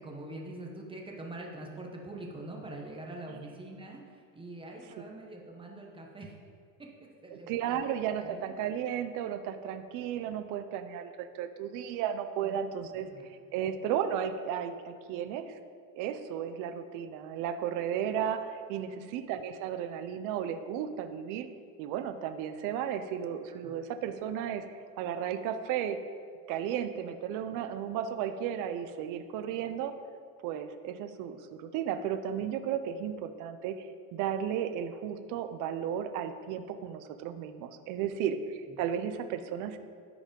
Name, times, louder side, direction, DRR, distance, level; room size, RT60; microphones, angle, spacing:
voice 1, 0.0-6.3 6.8-8.5 12.4-12.6 13.0-13.2 18.9-19.1 23.6-23.7 38.7-38.8, right 2 dB, 10° right, 0 dB, 1.1 m, -44 dB
voice 2, 7.3-15.6 16.0-21.5 21.8-24.7 25.0-26.0 26.5-29.9 30.4-39.8, right 9 dB, 50° right, 9 dB, 0.7 m, -34 dB
12.5 x 5.1 x 5.3 m, 2.2 s
supercardioid pair, 135°, 42 cm